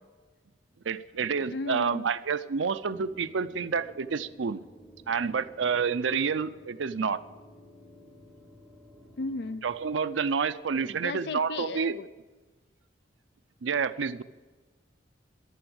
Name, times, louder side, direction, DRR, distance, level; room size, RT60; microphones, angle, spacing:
voice 1, 0.9-4.6 5.1-7.2 9.6-12.0 13.6-14.2, right 5 dB, 85° right, 13 dB, 0.5 m, -29 dB
voice 2, 1.5-2.1 9.2-9.6 11.0-12.1, left 3 dB, 65° left, 14 dB, 0.4 m, -35 dB
sound 1, 2.9-10.0, equal, 5° left, 1.1 m, -53 dB
12.5 x 7.0 x 9.5 m, 1.3 s
head